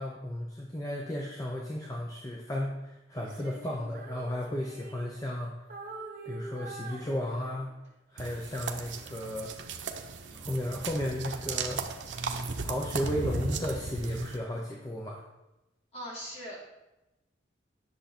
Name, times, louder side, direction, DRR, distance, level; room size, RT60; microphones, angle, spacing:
voice 1, 0.0-5.5 6.3-7.7 8.1-9.5 10.3-11.8 12.6-15.2, left 1 dB, 20° left, -1 dB, 0.9 m, -34 dB
Female singing, 3.2-5.4 5.7-7.8, right 3 dB, 50° right, 1.4 m, -45 dB
sound 1, 8.2-14.4, right 4 dB, 85° right, 0.9 m, -36 dB
voice 2, 15.9-16.6, equal, 35° left, -5 dB, 3.2 m, -40 dB
10.5 x 6.6 x 4.3 m, 0.98 s
head